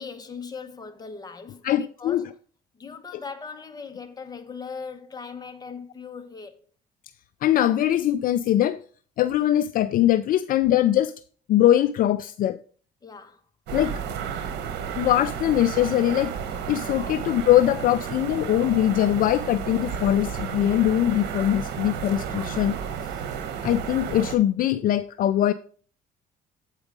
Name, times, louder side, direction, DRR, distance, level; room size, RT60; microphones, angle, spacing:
voice 1, 0.0-2.3 2.7-6.6 13.0-13.4 17.0-17.2 19.6-19.7 20.8-21.0 23.0-23.3, left 5 dB, 25° left, 1.0 m, -40 dB
voice 2, 1.6-2.2 7.4-8.8 9.2-11.1 11.5-12.6 13.7-14.0 15.0-16.3 16.7-22.8 23.6-25.5, left 12 dB, 55° left, 0.4 m, -22 dB
sound 1, 13.7-24.4, right 7 dB, 85° right, 1.1 m, -32 dB
8.2 x 4.9 x 5.0 m
cardioid pair, 110°, 17 cm